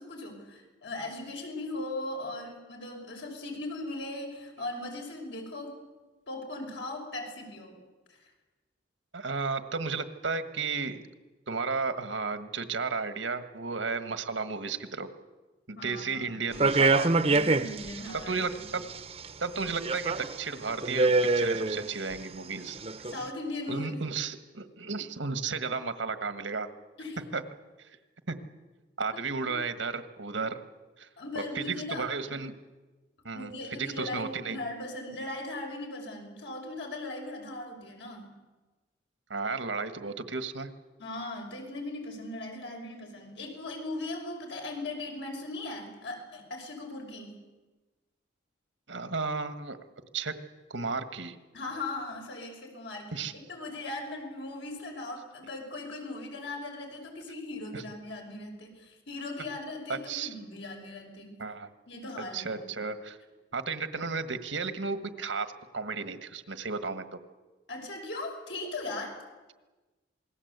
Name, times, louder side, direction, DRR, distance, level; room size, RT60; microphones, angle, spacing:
voice 1, 0.0-5.8 6.3-7.8 8.2-8.3 15.7-16.4 17.2-18.6 23.1-24.1 27.0-27.2 29.1-29.6 31.2-32.1 33.3-38.3 41.0-47.4 51.5-61.4 61.9-62.6 67.7-69.2, left 2 dB, 70° left, 1 dB, 5.8 m, -39 dB
voice 2, 9.1-11.1 11.5-15.1 15.7-17.1 18.3-18.8 19.4-22.8 23.7-26.7 27.3-27.4 28.3-28.4 29.0-30.6 31.0-31.1 31.3-32.5 33.2-34.6 39.3-40.7 48.9-49.8 50.1-50.3 50.7-51.4 53.1-53.3 57.7-57.8 59.9-60.3 61.4-61.7 62.3-63.2 63.5-65.5 65.7-67.2, right 4 dB, 85° right, 10 dB, 1.6 m, -33 dB
sound 1, 16.5-18.1 18.5-19.2 19.7-20.4 20.7-22.1 22.7-23.2, right 3 dB, 30° right, 0.9 m, -25 dB
27.5 x 20.0 x 8.2 m, 1.2 s
head